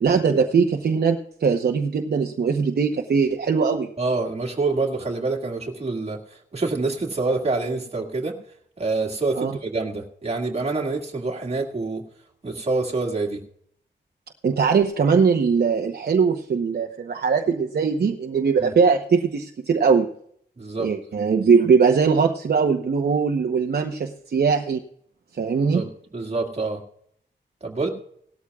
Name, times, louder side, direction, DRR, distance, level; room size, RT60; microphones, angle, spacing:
voice 1, 0.0-3.9 9.4-9.5 14.4-20.1 20.8-24.8 25.3-25.8, right 5 dB, 55° right, 4 dB, 0.9 m, -20 dB
voice 2, 4.0-8.3 8.8-12.0 12.4-13.4 18.6-18.7 20.6-20.9 25.7-25.9 26.1-26.8 27.6-27.9, right 3 dB, 35° right, -1 dB, 2.1 m, -26 dB
18.0 x 13.0 x 2.4 m, 0.66 s
wide cardioid pair, 140°, 19 cm